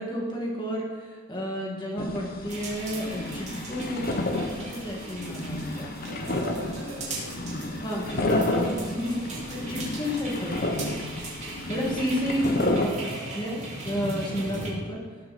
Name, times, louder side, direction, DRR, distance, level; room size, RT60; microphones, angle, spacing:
voice 1, 0.0-5.9 7.8-10.9 11.7-15.0, equal, 20° left, -2 dB, 2.4 m, -31 dB
sound 1, 2.0-12.9, left 2 dB, 45° left, 1.1 m, -31 dB
sound 2, 2.5-14.7, right 2 dB, 35° right, 2.9 m, -39 dB
voice 2, 6.0-9.4 12.5-13.7, right 1 dB, 85° right, -5 dB, 4.1 m, -43 dB
18.5 x 7.7 x 4.4 m, 1.5 s
head